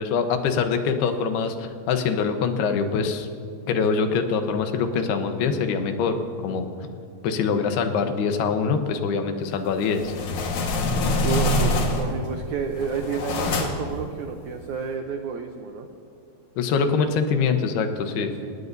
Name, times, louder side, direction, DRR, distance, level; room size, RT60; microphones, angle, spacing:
voice 1, 0.0-3.3 3.7-6.7 7.2-10.1 16.6-18.3, left 5 dB, 85° left, 6 dB, 3.1 m, -24 dB
sound 1, 9.8-12.3 12.7-14.0, left 2 dB, 60° left, 2.6 m, -24 dB
voice 2, 11.2-15.9 18.2-18.6, right 5 dB, 85° right, 5 dB, 1.6 m, -31 dB
27.0 x 19.0 x 2.7 m, 2.4 s
omnidirectional pair, 4.5 m